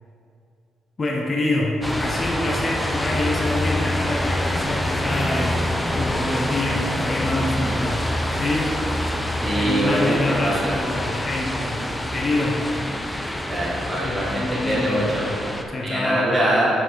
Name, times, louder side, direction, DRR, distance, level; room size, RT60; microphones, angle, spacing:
voice 1, 1.0-8.7 9.6-11.8 12.1-12.6 14.0-15.1 15.7-16.3, left 2 dB, 35° left, -2 dB, 1.1 m, -26 dB
sound 1, 1.8-15.6, left 1 dB, 10° left, 0.6 m, -26 dB
voice 2, 9.4-10.7 13.4-15.3 15.8-16.7, right 1 dB, 10° right, -8 dB, 1.7 m, -23 dB
6.2 x 5.9 x 4.8 m, 2.6 s
cardioid pair, 90°, 0 cm